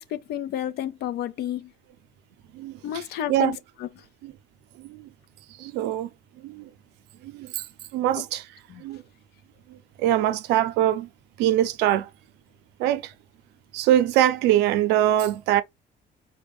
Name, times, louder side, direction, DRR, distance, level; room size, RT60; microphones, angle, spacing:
voice 1, 0.0-1.7 2.8-4.0 8.2-8.3 8.7-8.8, left 11 dB, 70° left, 0.5 m, -31 dB
voice 2, 2.5-3.0 3.3-3.6 4.2-4.3 4.8-5.1 5.6-6.1 6.4-6.7 7.2-7.7 7.9-8.5 8.8-9.0 9.7-11.1 11.4-12.1 12.8-13.1 13.7-15.6, right 12 dB, 90° right, 0.5 m, -23 dB
4.2 x 2.1 x 3.4 m
cardioid pair, 110°, 17 cm